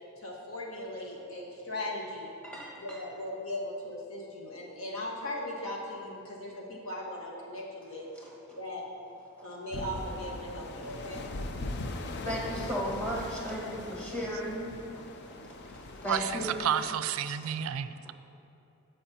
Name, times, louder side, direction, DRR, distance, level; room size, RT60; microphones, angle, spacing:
voice 1, 0.2-2.3 2.7-8.1 8.6-8.8 9.4-11.2, left 1 dB, 80° left, -3 dB, 1.5 m, -38 dB
voice 2, 2.4-2.8 8.5-8.6 12.2-14.7 15.4-16.5 17.4-17.5 18.0-18.1, equal, 5° left, -5 dB, 1.6 m, -35 dB
sound 1, 9.7-16.9, left 2 dB, 55° left, 0.5 m, -40 dB
voice 3, 16.1-18.1, right 8 dB, 85° right, 13 dB, 0.3 m, -31 dB
15.0 x 5.4 x 2.9 m, 2.7 s
head